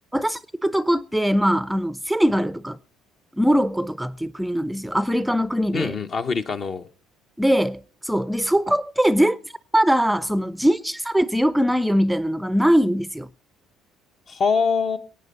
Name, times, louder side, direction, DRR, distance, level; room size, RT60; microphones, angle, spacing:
voice 1, 0.1-2.8 3.4-5.9 7.4-9.4 9.7-13.3, equal, 5° right, 0.5 m, -21 dB
voice 2, 5.7-6.9 14.3-15.0, left 5 dB, 45° left, 1.0 m, -23 dB
23.0 x 8.9 x 4.0 m
hypercardioid pair, 60°, 0 cm